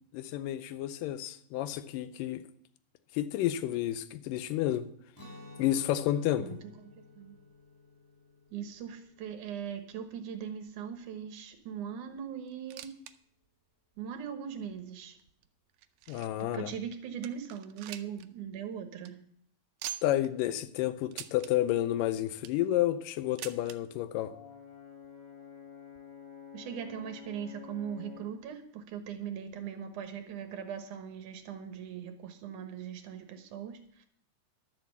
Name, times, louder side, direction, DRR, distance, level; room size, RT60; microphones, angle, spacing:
voice 1, 0.1-2.4 3.1-4.9 5.6-6.6 16.1-16.7 20.0-24.3, left 13 dB, 85° left, 2.3 m, -30 dB
Guitar, 5.1-11.0, left 2 dB, 15° left, 0.6 m, -54 dB
voice 2, 8.5-12.9 14.0-15.2 16.4-19.2 26.5-34.1, right 8 dB, 70° right, 2.4 m, -40 dB
sound 1, 12.5-13.1 13.4-13.5 14.2-14.3 15.0-16.5 16.9-17.0 17.2-18.3 18.6-18.7 18.9-19.1 19.8-20.3 21.1-21.5 22.1-22.7 23.4-23.8 24.7-24.8 25.0-25.1 25.9-26.0, right 13 dB, 85° right, 1.5 m, -43 dB
Brass instrument, 24.2-28.4, left 7 dB, 45° left, 7.0 m, -49 dB
12.0 x 7.4 x 7.1 m
omnidirectional pair, 3.8 m